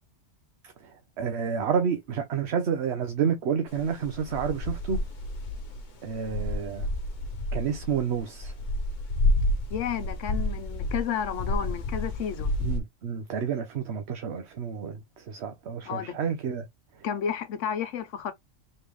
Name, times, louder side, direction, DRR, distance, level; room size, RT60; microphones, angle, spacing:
voice 1, 0.6-5.0 6.0-6.9 7.5-8.5 12.6-16.7 16.9-17.1, right 7 dB, 65° right, 1.0 m, -30 dB
sound 1, 3.7-12.8, left 1 dB, 45° left, 0.8 m, -30 dB
voice 2, 9.7-12.5 15.8-16.2 17.0-18.3, left 8 dB, 80° left, 1.1 m, -31 dB
4.3 x 3.4 x 3.1 m
omnidirectional pair, 1.2 m